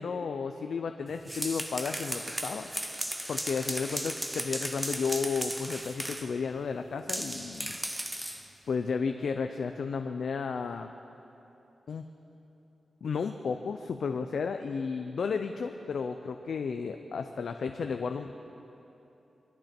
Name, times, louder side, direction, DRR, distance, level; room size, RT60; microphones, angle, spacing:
voice 1, 0.0-2.7 3.3-7.8 8.7-10.9 11.9-12.1 13.0-18.3, left 5 dB, 70° left, 6 dB, 0.6 m, -33 dB
sound 1, 1.1-6.3 7.1-8.5, right 1 dB, 10° right, 0.9 m, -36 dB
23.5 x 13.5 x 4.4 m, 3.0 s
wide cardioid pair, 115°, 0 cm